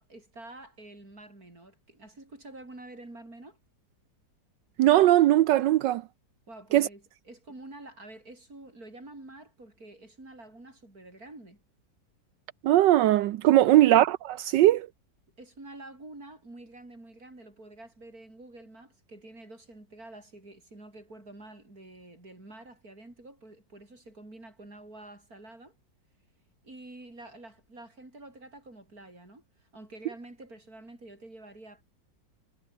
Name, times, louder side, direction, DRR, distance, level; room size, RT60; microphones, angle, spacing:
voice 1, 0.0-3.6 6.5-11.6 13.6-13.9 15.4-25.8 26.6-31.8, right 2 dB, 50° right, 7.3 m, -48 dB
voice 2, 4.8-6.0 6.7-6.9 12.6-14.9, right 14 dB, 75° right, 1.3 m, -20 dB
omnidirectional pair, 2.0 m